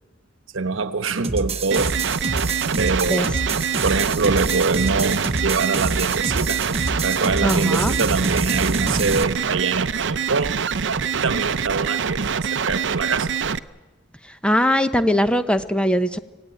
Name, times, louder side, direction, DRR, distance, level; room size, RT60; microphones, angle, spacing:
voice 1, 0.5-2.0 2.8-3.3 3.8-6.6 7.0-10.6 11.1-13.4, right 4 dB, 85° right, 1.1 m, -24 dB
sound 1, 1.2-9.2, right 3 dB, 30° right, 1.1 m, -27 dB
sound 2, 1.7-13.6, right 6 dB, 65° right, 0.7 m, -25 dB
voice 2, 7.4-7.9 14.4-16.2, equal, 5° left, 0.8 m, -20 dB
25.5 x 17.0 x 9.2 m
head